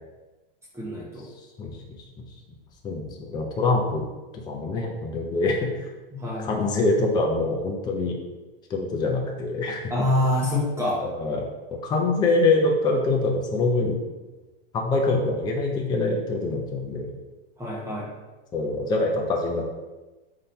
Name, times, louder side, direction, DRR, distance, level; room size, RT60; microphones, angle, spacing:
voice 1, 0.7-1.3 6.1-6.5 9.9-11.0 17.6-18.1, left 1 dB, 10° right, -5 dB, 0.8 m, -25 dB
voice 2, 2.8-4.1 4.5-5.9 6.4-8.2 8.7-9.8 11.0-11.5 11.7-14.0 14.7-17.1 18.5-19.7, left 2 dB, 15° left, 0 dB, 0.5 m, -24 dB
3.6 x 2.8 x 4.2 m, 1.2 s
supercardioid pair, 135°, 29 cm